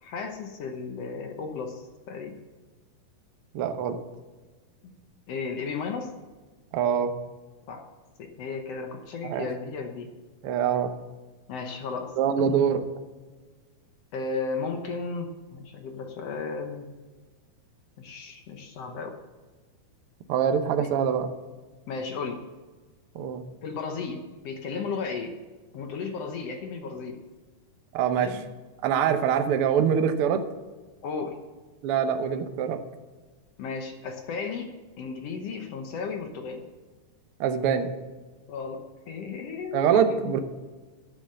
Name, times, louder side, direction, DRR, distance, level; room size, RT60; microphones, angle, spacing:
voice 1, 0.0-2.4 4.8-4.9 5.3-6.1 7.7-7.9 8.2-10.1 11.5-12.6 14.1-16.9 18.0-19.2 20.8-20.9 21.9-22.4 23.6-25.4 25.7-27.2 28.1-28.4 31.0-31.4 33.6-34.7 35.0-36.6 38.5-40.3, left 4 dB, 65° left, 5 dB, 1.7 m, -34 dB
voice 2, 3.5-4.0 6.7-7.1 9.2-9.5 10.4-10.9 12.2-12.8 20.3-21.3 23.1-23.4 27.9-28.3 28.8-30.4 31.8-32.8 37.4-37.9 39.7-40.4, right 8 dB, 85° right, 7 dB, 1.2 m, -24 dB
11.0 x 7.1 x 7.6 m, 1.3 s
omnidirectional pair, 3.8 m